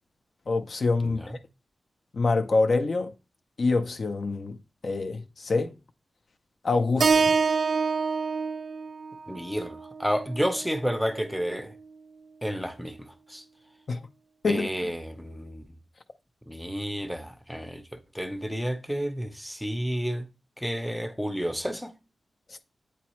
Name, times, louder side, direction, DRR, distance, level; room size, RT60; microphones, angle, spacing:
voice 1, 0.5-1.2 2.1-3.1 3.6-4.6 4.8-5.7 6.6-7.3 13.9-14.0 14.4-14.7, left 3 dB, 50° left, 0.4 m, -25 dB
voice 2, 1.0-1.4 9.3-11.7 12.4-13.0 13.3-13.4 14.5-15.6 16.5-17.8 18.1-20.2 20.6-21.9, equal, ahead, 0.6 m, -31 dB
Keyboard (musical), 7.0-11.2, right 5 dB, 60° right, 0.3 m, -27 dB
8.3 x 4.0 x 3.0 m
wide cardioid pair, 130°, 0 cm